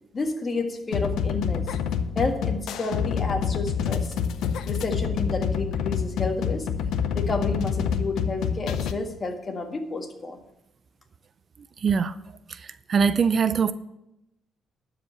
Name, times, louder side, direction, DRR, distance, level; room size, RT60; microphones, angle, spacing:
voice 1, 0.1-1.7 2.1-4.1 4.6-6.7 7.1-10.4, left 3 dB, 35° left, 1.7 m, -30 dB
sound 1, 0.9-8.9, left 7 dB, 80° left, 0.7 m, -27 dB
voice 2, 11.8-12.1 12.9-13.7, right 6 dB, 50° right, 0.5 m, -21 dB
12.5 x 5.0 x 8.4 m
cardioid pair, 90°, 0 cm